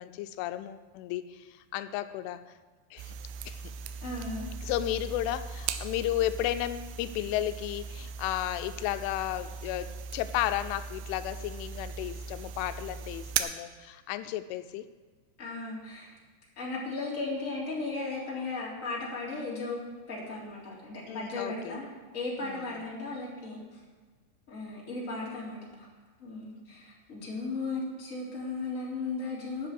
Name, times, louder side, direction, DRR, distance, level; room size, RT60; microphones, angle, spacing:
voice 1, 0.0-1.5 1.7-2.4 2.9-3.1 3.5-3.6 4.6-14.8 21.1-21.8 22.4-22.8, left 13 dB, 90° left, 10 dB, 3.1 m, -33 dB
sound 1, 3.0-13.4, right 6 dB, 85° right, 3.1 m, -38 dB
voice 2, 4.0-4.5 15.4-16.2 16.5-19.8 20.1-21.9 22.1-23.6 24.5-25.6 26.2-29.7, left 3 dB, 20° left, -6 dB, 3.3 m, -36 dB
12.0 x 7.3 x 7.8 m, 1.4 s
omnidirectional pair, 5.5 m